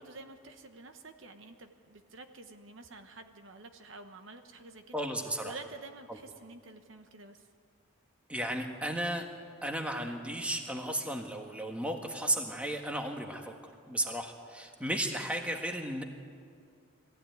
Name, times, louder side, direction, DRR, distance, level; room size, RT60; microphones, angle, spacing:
voice 1, 0.0-5.1 5.4-7.5, right 3 dB, 65° right, 6 dB, 1.1 m, -49 dB
voice 2, 4.9-5.5 6.1-6.2 8.3-9.2 9.6-16.0, right 1 dB, 5° right, 3 dB, 1.5 m, -34 dB
22.0 x 15.5 x 9.4 m, 2.2 s
head